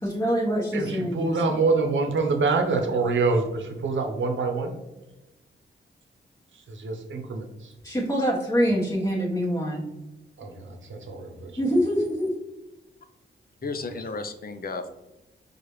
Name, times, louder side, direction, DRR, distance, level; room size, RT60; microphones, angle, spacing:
voice 1, 0.0-1.3 7.8-9.9 11.6-12.3, equal, 20° left, -6 dB, 1.1 m, -25 dB
voice 2, 0.7-4.7 6.5-7.7 10.4-11.6, right 3 dB, 75° right, 4 dB, 0.7 m, -26 dB
voice 3, 13.6-14.9, left 3 dB, 50° left, 8 dB, 0.5 m, -33 dB
4.8 x 2.4 x 3.0 m, 0.98 s
cardioid pair, 55°, 20 cm